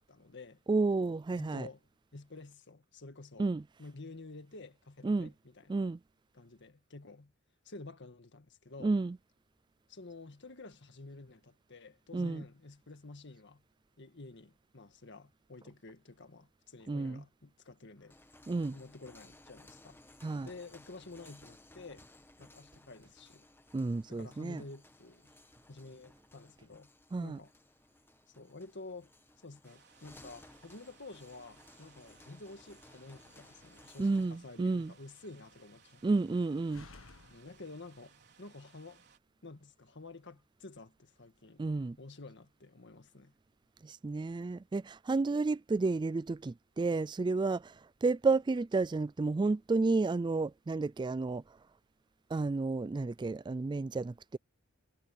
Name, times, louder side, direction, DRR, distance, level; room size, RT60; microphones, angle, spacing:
voice 1, 0.0-0.6 1.4-1.8 2.1-3.5 3.8-5.8 6.3-7.3 7.7-8.9 9.9-13.6 14.0-18.2 18.7-20.0 20.4-22.1 22.4-23.5 24.1-25.3 25.7-26.9 27.2-27.5 28.4-29.1 29.4-36.2 37.3-39.1 39.4-41.6 42.0-43.3, left 3 dB, 60° left, 1.7 m, -50 dB
voice 2, 0.7-1.7 3.4-3.7 5.0-5.3 5.7-6.0 8.8-9.2 12.1-12.4 16.9-17.2 18.5-18.8 20.2-20.5 23.7-24.6 27.1-27.4 34.0-34.9 36.0-36.9 41.6-42.0 43.8-47.7 48.0-51.4 52.3-54.4, right 3 dB, 20° right, 0.3 m, -31 dB
sound 1, 18.0-34.4, left 2 dB, 10° left, 1.4 m, -59 dB
sound 2, 29.6-39.2, right 7 dB, 55° right, 4.5 m, -64 dB
Slam, 32.7-38.3, left 3 dB, 75° left, 1.6 m, -60 dB
head